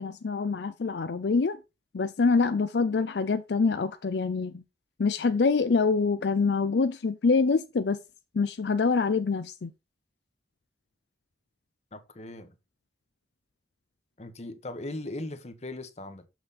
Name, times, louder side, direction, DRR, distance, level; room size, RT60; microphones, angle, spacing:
voice 1, 0.0-1.6 1.9-4.6 5.0-8.0 8.3-9.7, left 4 dB, 70° left, 0.5 m, -25 dB
voice 2, 11.9-12.5 14.2-16.3, left 2 dB, 40° left, 1.1 m, -39 dB
7.0 x 6.1 x 4.1 m
head